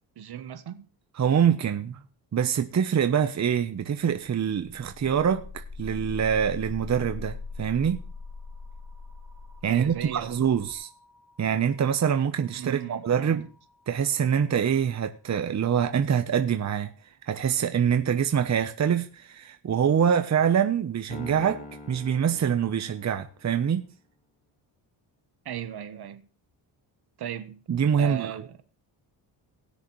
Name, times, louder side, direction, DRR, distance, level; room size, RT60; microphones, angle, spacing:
voice 1, 0.2-0.9 9.7-10.4 12.6-13.4 25.4-26.3 27.2-27.6 28.0-28.6, right 11 dB, 60° right, 1.3 m, -37 dB
voice 2, 1.2-2.0 2.3-8.0 9.6-10.9 11.4-13.5 13.9-16.9 17.3-23.9 27.7-28.4, right 8 dB, 35° right, 1.0 m, -25 dB
sound 1, 4.6-14.1, left 4 dB, ahead, 1.7 m, -42 dB
Piano, 21.1-23.5, left 2 dB, 20° left, 2.3 m, -44 dB
18.5 x 6.6 x 3.2 m
cardioid pair, 85°, 45 cm